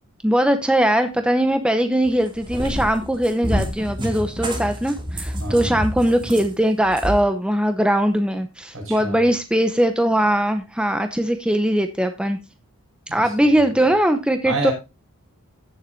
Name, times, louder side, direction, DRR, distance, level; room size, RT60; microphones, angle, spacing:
voice 1, 0.2-12.4 13.1-14.7, right 1 dB, 5° right, 7 dB, 0.8 m, -20 dB
Cat, 2.1-7.2, equal, 20° right, 2.3 m, -28 dB
voice 2, 5.4-5.8 8.7-9.3 13.1-13.6 14.4-14.7, right 2 dB, 65° right, 1 dB, 5.7 m, -29 dB
16.0 x 7.3 x 2.6 m, 0.26 s
head